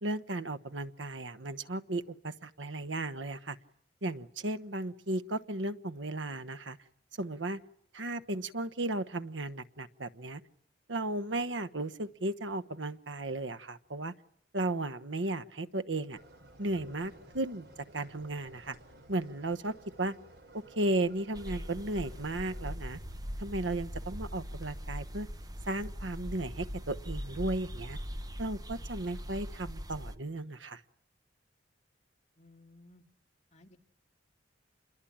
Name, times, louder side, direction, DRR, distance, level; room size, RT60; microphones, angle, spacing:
voice 1, 0.0-3.6 4.0-6.8 7.2-7.6 7.9-10.4 10.9-14.1 14.5-16.2 16.6-17.7 17.9-18.8 19.1-20.2 20.5-23.0 23.4-25.3 25.7-28.0 28.4-30.8, right 2 dB, 90° right, 13 dB, 1.2 m, -35 dB
sound 1, 16.1-22.8, right 1 dB, 60° right, 3.6 m, -55 dB
sound 2, 21.3-30.2, equal, 20° right, 1.2 m, -41 dB
voice 2, 32.4-33.0 33.5-33.8, left 2 dB, 40° left, 3 dB, 2.5 m, -58 dB
28.5 x 22.0 x 8.8 m, 0.71 s
head